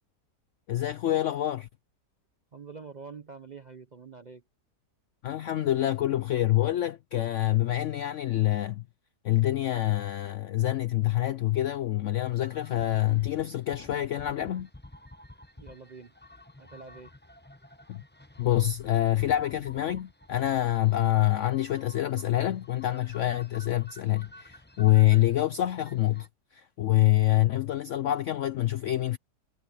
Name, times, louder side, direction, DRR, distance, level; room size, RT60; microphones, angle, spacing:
voice 1, 0.7-1.7 5.2-8.8 9.2-14.7 17.9-18.0 18.4-26.3 26.5-29.2, left 14 dB, 70° left, 0.7 m, -26 dB
voice 2, 2.5-4.4 15.6-16.1 16.6-17.1, right 5 dB, 40° right, 0.6 m, -46 dB
sound 1, 12.3-26.3, left 2 dB, 10° left, 0.8 m, -52 dB
omnidirectional pair, 1.7 m